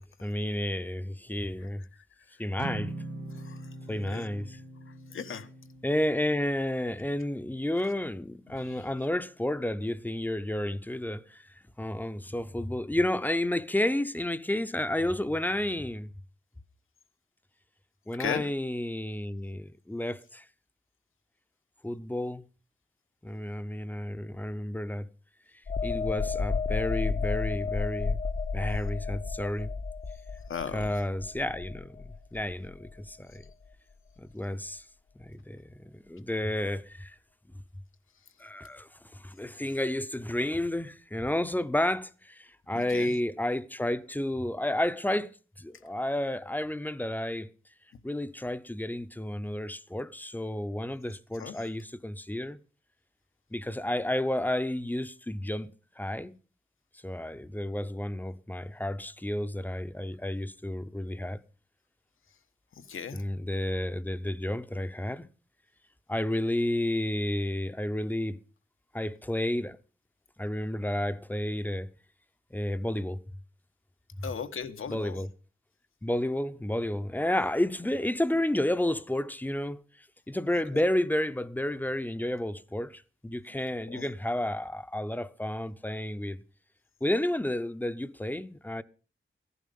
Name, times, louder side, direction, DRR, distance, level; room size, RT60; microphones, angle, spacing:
voice 1, 0.2-1.8 2.4-2.9 3.9-4.6 5.8-11.5 11.8-16.1 18.1-20.4 21.8-22.4 23.2-25.1 25.8-28.2 28.5-29.7 30.7-33.4 34.2-34.8 35.2-37.2 38.4-47.5 48.0-52.6 53.5-55.7 56.0-56.3 57.0-61.4 63.1-65.3 66.1-68.4 68.9-69.8 70.4-71.9 72.5-73.2 74.2-74.3 74.9-75.3 76.0-79.8 80.3-86.4 87.0-88.8, left 1 dB, 10° left, 0.7 m, -31 dB
sound 1, 2.6-9.0, right 2 dB, 65° right, 2.3 m, -43 dB
voice 2, 3.3-3.7 4.1-4.2 4.9-5.5 8.5-8.9 18.2-18.5 30.5-31.0 42.7-43.1 51.4-51.7 62.7-63.2 74.2-75.2 80.7-80.8 83.9-84.1, left 7 dB, 85° left, 1.2 m, -37 dB
sound 2, 25.7-33.1 33.5-33.7, left 4 dB, 40° left, 0.7 m, -32 dB
14.5 x 11.0 x 5.3 m
wide cardioid pair, 95°, 21 cm